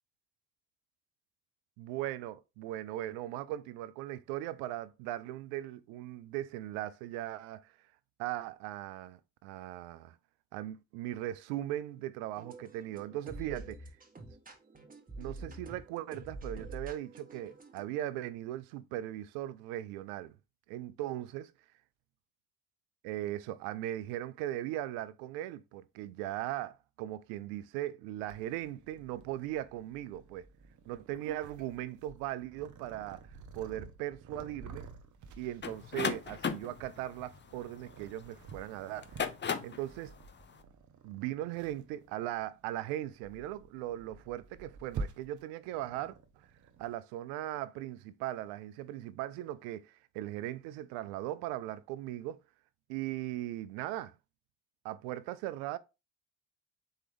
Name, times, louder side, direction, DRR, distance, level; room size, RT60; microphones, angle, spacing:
voice 1, 1.8-7.7 8.2-10.2 10.5-13.8 15.2-20.3 20.7-21.4 23.0-30.5 30.9-33.2 33.5-34.9 35.4-39.3 39.6-40.1 41.0-46.2 46.8-52.4 52.9-54.1 54.8-55.8, right 13 dB, 80° right, 0.5 m, -39 dB
sound 1, 12.4-17.8, right 2 dB, 20° right, 1.3 m, -47 dB
Purr, 28.2-46.9, right 4 dB, 50° right, 0.9 m, -49 dB
sound 2, 35.6-38.3 38.9-39.8, left 6 dB, 30° left, 0.7 m, -35 dB
4.4 x 3.4 x 3.4 m
hypercardioid pair, 50°, 38 cm